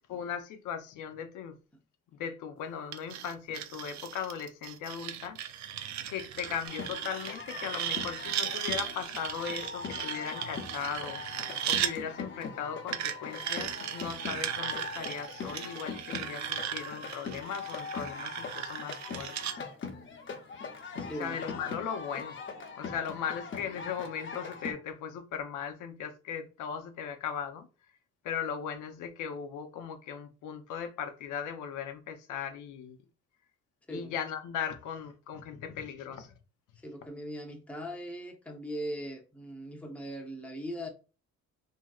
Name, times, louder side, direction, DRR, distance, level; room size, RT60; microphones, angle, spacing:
voice 1, 0.1-1.6 2.1-5.4 6.1-11.2 11.6-19.3 21.2-22.4 22.7-27.7 28.2-33.0 33.9-36.3, left 7 dB, 85° left, 0.7 m, -38 dB
sound 1, 2.9-11.9 12.9-19.6, right 10 dB, 70° right, 0.4 m, -37 dB
sound 2, 6.7-24.7, left 5 dB, 40° left, 0.8 m, -41 dB
voice 2, 21.0-21.4 33.9-34.1 36.8-40.9, equal, 5° left, 0.7 m, -39 dB
3.0 x 2.7 x 2.3 m
cardioid pair, 90°, 30 cm